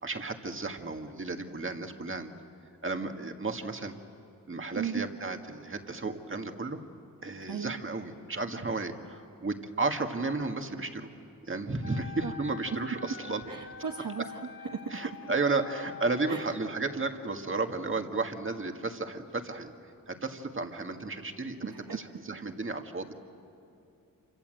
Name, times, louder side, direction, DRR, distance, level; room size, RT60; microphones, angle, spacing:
voice 1, 0.0-2.3 2.8-3.9 4.5-6.8 7.2-11.1 11.5-13.4 14.9-19.7 20.1-23.1, right 3 dB, 35° right, 5 dB, 1.9 m, -33 dB
Wind instrument woodwind instrument, 11.8-16.6, left 6 dB, 35° left, 1.2 m, -46 dB
voice 2, 13.5-14.2 14.7-15.1 16.3-16.4 21.6-22.0, right 6 dB, 65° right, 2 dB, 1.4 m, -35 dB
28.5 x 25.5 x 7.8 m, 2.7 s
wide cardioid pair, 115°, 34 cm